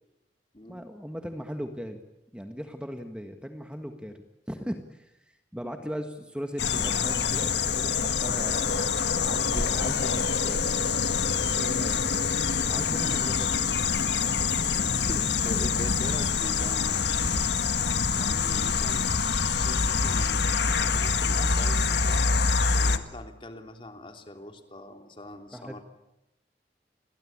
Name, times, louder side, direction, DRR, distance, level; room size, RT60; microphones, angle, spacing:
voice 1, 0.7-2.0 2.3-4.1 4.5-8.9 9.2-11.2 11.5-13.7 25.5-25.8, equal, 5° right, 5 dB, 1.6 m, -38 dB
sound 1, 6.6-23.0, left 5 dB, 80° left, 1.7 m, -25 dB
voice 2, 14.5-17.4 18.1-19.2 19.4-22.3 22.7-25.8, left 1 dB, 30° left, 5 dB, 3.2 m, -43 dB
30.0 x 22.5 x 8.8 m, 0.93 s
head